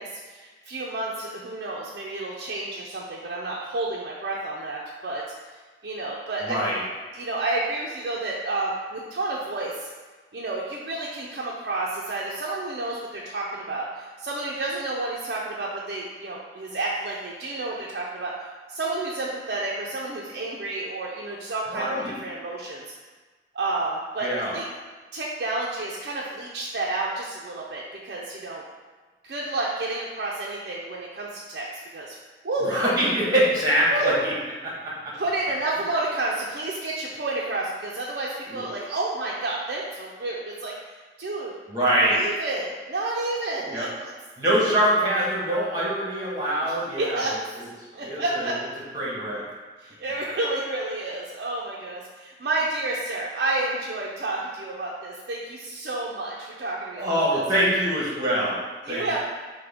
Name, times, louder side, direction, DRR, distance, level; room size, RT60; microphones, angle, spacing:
voice 1, 0.0-5.2 5.8-6.6 7.1-9.9 10.3-22.8 23.5-24.6 25.1-28.6 29.2-31.7 31.9-32.2 32.4-32.7 33.9-34.1 35.2-40.7 41.2-41.5 42.0-44.1 47.0-47.3 47.9-48.6 49.8-57.4 58.8-59.2, right 2 dB, 60° right, -4 dB, 0.5 m, -30 dB
voice 2, 6.4-6.8 21.7-22.1 24.2-24.5 32.6-34.3 34.6-34.9 38.5-38.7 41.7-42.2 43.7-43.9 44.4-47.7 48.0-48.5 48.9-49.4 57.0-58.6 58.9-59.2, right 1 dB, 20° right, -6 dB, 1.1 m, -24 dB
5.9 x 2.2 x 3.5 m, 1.4 s
head